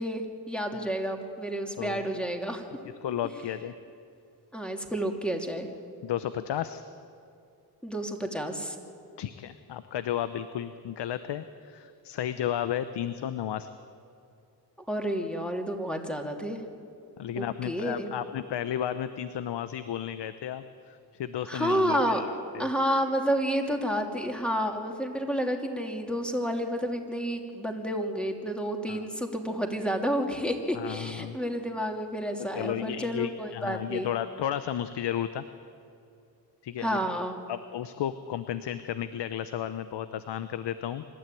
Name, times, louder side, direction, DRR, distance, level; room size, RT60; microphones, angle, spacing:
voice 1, 0.0-2.6 4.5-5.7 7.8-8.8 14.9-16.6 17.4-18.1 21.5-22.2 22.6-34.1 36.8-37.4, equal, ahead, 3 dB, 2.6 m, -30 dB
voice 2, 1.8-2.1 3.0-3.7 6.0-6.8 9.2-13.7 17.2-22.3 22.5-22.7 28.9-29.0 30.7-31.4 32.4-35.4 36.6-37.0 37.5-41.0, left 10 dB, 80° left, 12 dB, 0.8 m, -33 dB
25.5 x 12.5 x 9.2 m, 2.6 s
cardioid pair, 85°, 41 cm